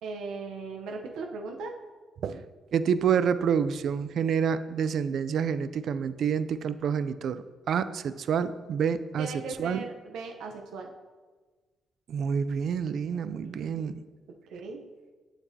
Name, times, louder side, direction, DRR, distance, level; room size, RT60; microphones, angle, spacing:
voice 1, 0.0-1.8 9.2-10.9 13.6-14.0 14.5-14.8, right 4 dB, 85° right, 2 dB, 0.7 m, -38 dB
voice 2, 2.7-9.8 12.1-13.9, right 7 dB, 65° right, 13 dB, 0.3 m, -28 dB
7.2 x 6.9 x 2.7 m, 1.4 s
cardioid pair, 90°, 0 cm